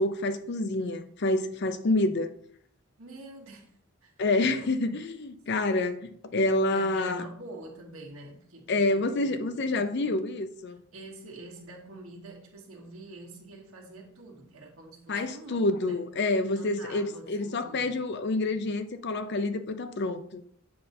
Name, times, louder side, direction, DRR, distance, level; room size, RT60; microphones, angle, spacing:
voice 1, 0.0-2.3 4.2-7.2 8.7-10.8 15.1-20.4, left 2 dB, 50° left, 0.5 m, -28 dB
voice 2, 3.0-4.1 4.6-4.9 6.7-10.2 10.9-16.0 16.5-18.0, right 2 dB, 75° right, 1.5 m, -46 dB
7.8 x 5.3 x 2.7 m
head